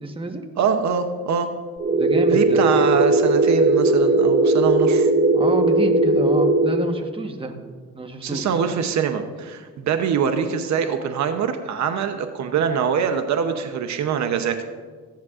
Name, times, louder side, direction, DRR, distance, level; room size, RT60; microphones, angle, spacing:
voice 1, 0.0-0.4 1.9-2.6 5.3-7.5 7.9-8.5, right 2 dB, 15° right, 4 dB, 1.2 m, -28 dB
voice 2, 0.6-1.5 2.3-5.1 8.2-14.6, right 7 dB, 65° right, 7 dB, 0.8 m, -24 dB
sound 1, 1.8-6.8, right 2 dB, 35° right, 2.1 m, -18 dB
15.0 x 10.5 x 2.4 m, 1.5 s
cardioid pair, 90°, 30 cm